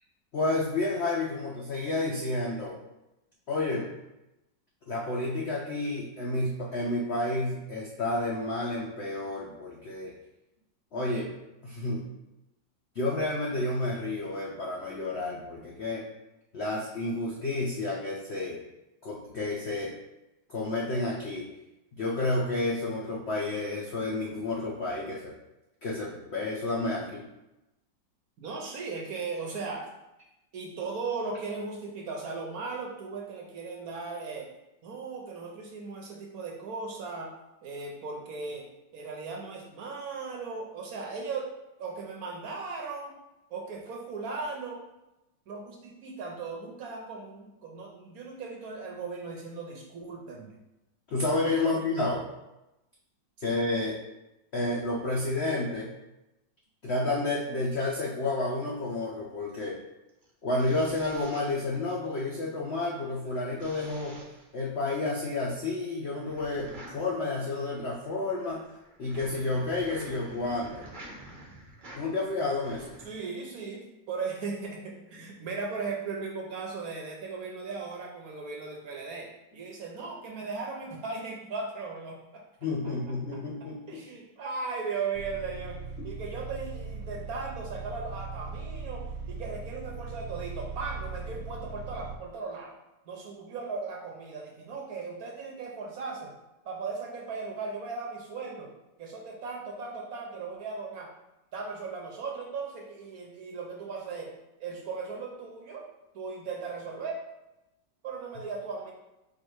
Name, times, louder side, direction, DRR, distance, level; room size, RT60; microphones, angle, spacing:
voice 1, 0.3-2.8 3.5-3.8 4.9-10.1 10.9-11.3 11.6-12.1 12.9-16.0 16.5-18.6 19.0-19.9 20.5-21.5 21.9-25.4 25.8-27.3 51.1-52.2 53.4-54.0 54.5-55.9 56.8-59.8 60.4-64.2 64.5-68.6 69.0-70.8 71.9-72.9 82.6-84.0 86.0-86.1, left 2 dB, 70° left, -3 dB, 0.6 m, -30 dB
voice 2, 28.4-29.9 30.5-34.5 34.8-37.3 37.6-38.7 38.9-41.5 41.8-43.1 43.5-44.8 45.5-50.5 51.6-51.8 53.4-53.5 73.0-82.4 83.9-92.8 93.1-96.3 96.6-98.7 99.0-101.1 101.5-104.3 104.6-105.8 106.1-107.2 108.0-108.9, right 4 dB, 65° right, 0 dB, 1.0 m, -37 dB
sound 1, 60.1-62.2 63.6-64.5 66.3-73.1, right 1 dB, 45° right, 0.6 m, -48 dB
sound 2, 85.2-92.2, right 4 dB, 85° right, 1.3 m, -39 dB
4.7 x 2.5 x 4.5 m, 0.95 s
omnidirectional pair, 2.0 m